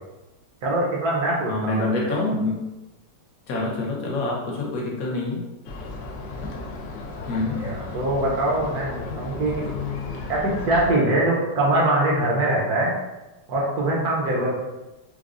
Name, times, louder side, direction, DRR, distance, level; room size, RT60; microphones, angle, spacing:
voice 1, 0.6-1.8 7.6-9.6 10.3-12.9 13.5-14.6, right 1 dB, 65° right, -3 dB, 1.2 m, -23 dB
voice 2, 1.5-2.6 3.5-5.5 7.3-7.6 9.1-10.2, left 2 dB, 60° left, -2 dB, 1.1 m, -27 dB
sound 1, 5.6-10.9, left 3 dB, 80° left, 0.6 m, -35 dB
4.8 x 2.2 x 2.5 m, 1.0 s
omnidirectional pair, 1.8 m